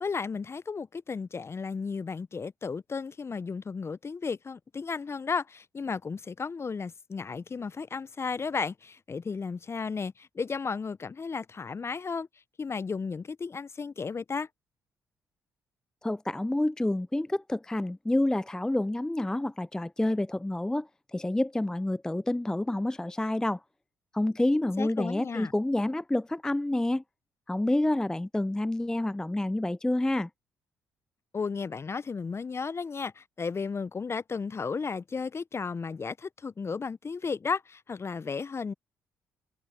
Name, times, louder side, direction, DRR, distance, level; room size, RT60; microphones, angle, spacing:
voice 1, 0.0-12.3 12.6-14.5 24.8-25.5 31.3-38.7, left 5 dB, 35° left, 0.7 m, -34 dB
voice 2, 16.0-23.6 24.1-27.0 27.5-30.3, left 1 dB, 10° left, 0.3 m, -28 dB
hypercardioid pair, 50°, 8 cm